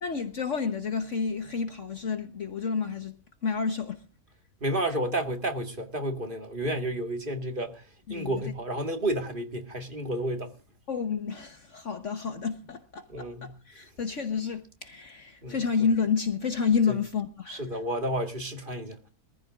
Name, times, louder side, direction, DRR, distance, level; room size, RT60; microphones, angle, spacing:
voice 1, 0.0-4.0 8.1-8.5 10.9-17.8, left 6 dB, 55° left, 1.4 m, -30 dB
voice 2, 4.6-7.8 8.1-10.5 13.1-13.5 15.4-15.6 16.9-17.0 17.5-19.0, right 1 dB, 35° right, 2.0 m, -31 dB
23.5 x 14.5 x 2.5 m
omnidirectional pair, 1.6 m